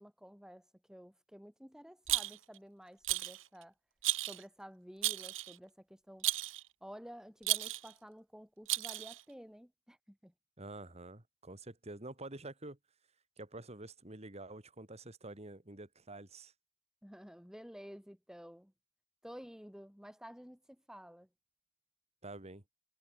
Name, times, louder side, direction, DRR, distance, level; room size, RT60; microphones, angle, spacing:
voice 1, 0.0-3.7 4.2-6.3 6.8-10.3 17.0-18.7 19.2-21.3, equal, 5° right, 6.4 m, -52 dB
Rattle, 2.1-2.6 3.0-3.4 4.0-4.4 5.0-5.6 6.2-6.6 7.4-7.9 8.7-9.2, right 16 dB, 80° right, 1.6 m, -34 dB
voice 2, 10.6-12.8 13.4-16.5 22.2-22.6, right 2 dB, 35° right, 2.5 m, -48 dB
head